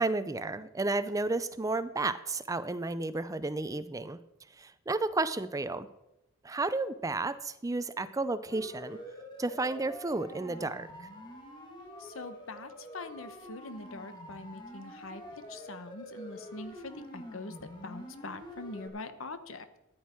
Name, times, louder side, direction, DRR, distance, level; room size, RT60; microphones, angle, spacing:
voice 1, 0.0-4.2 4.6-5.9 6.4-9.0 9.4-11.1, right 2 dB, 15° right, 14 dB, 0.4 m, -32 dB
Siren, 8.5-18.9, left 1 dB, 20° left, 2.0 m, -47 dB
voice 2, 12.0-17.5 17.8-19.7, left 3 dB, 70° left, 11 dB, 1.1 m, -43 dB
14.0 x 10.5 x 4.5 m, 0.90 s
head